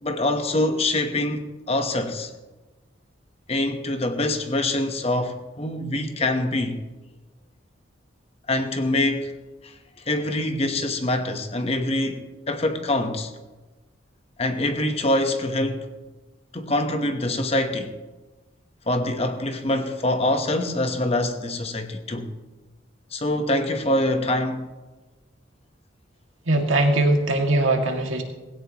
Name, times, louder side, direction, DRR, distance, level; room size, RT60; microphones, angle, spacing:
voice 1, 0.0-2.3 3.5-6.8 8.5-9.3 9.6-9.7 10.1-13.3 14.4-15.9 16.5-18.0 18.9-22.3 23.1-24.7, left 1 dB, 30° left, 1.0 m, -25 dB
voice 2, 26.4-28.2, right 2 dB, 90° right, 2.1 m, -21 dB
17.0 x 16.5 x 3.0 m
head